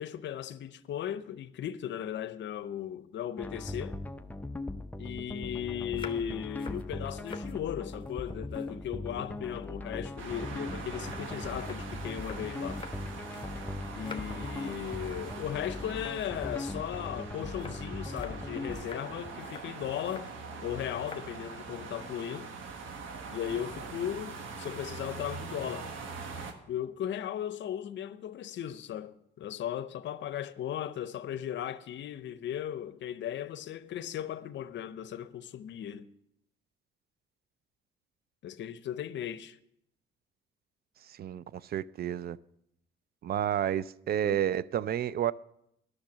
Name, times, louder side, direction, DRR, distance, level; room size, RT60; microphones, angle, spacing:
voice 1, 0.0-4.0 5.0-12.9 13.9-20.3 20.6-22.5 23.3-25.9 26.7-36.1 38.4-39.6 44.2-44.4, left 10 dB, 65° left, 0.6 m, -37 dB
sound 1, 3.4-18.8, left 2 dB, 10° left, 0.5 m, -39 dB
sound 2, 5.8-7.5 7.9-9.1 9.4-13.6 13.8-14.5 14.9-15.2 15.5-15.6 16.0-20.3 20.9-21.3 21.7-22.0, left 5 dB, 25° left, 1.1 m, -49 dB
sound 3, 10.2-26.5, right 4 dB, 80° right, 1.4 m, -43 dB
voice 2, 41.2-42.4 43.2-45.3, right 10 dB, 50° right, 0.4 m, -30 dB
10.5 x 6.5 x 7.3 m
cardioid pair, 90°, 20 cm